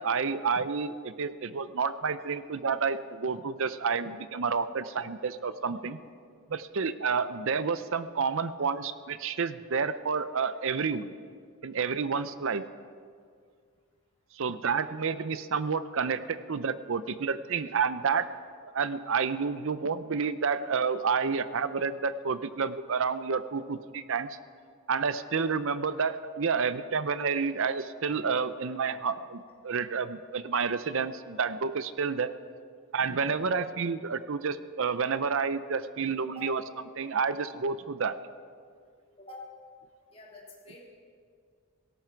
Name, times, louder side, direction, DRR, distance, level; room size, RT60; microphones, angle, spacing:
voice 1, 0.0-6.0 6.5-11.1 11.6-12.6 14.3-18.3 18.7-24.4 24.9-32.3 32.9-36.6 37.0-38.2, right 5 dB, 60° right, 14 dB, 0.6 m, -30 dB
voice 2, 39.2-39.5 40.1-40.8, left 2 dB, 25° left, -4 dB, 3.5 m, -46 dB
18.0 x 17.0 x 4.6 m, 2.1 s
head